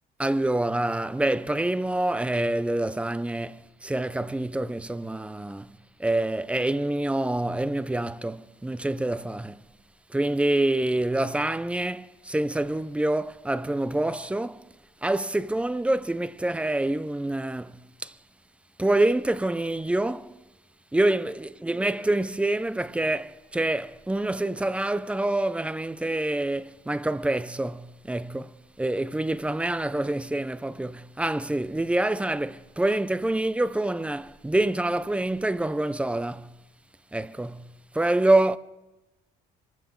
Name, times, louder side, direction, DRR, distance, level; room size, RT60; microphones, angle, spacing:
voice 1, 0.2-9.6 10.1-14.7 15.0-18.2 18.8-20.4 20.9-36.5 37.1-38.6, right 1 dB, 5° right, 0.5 m, -26 dB
25.5 x 14.5 x 3.8 m
cardioid pair, 110°, 17 cm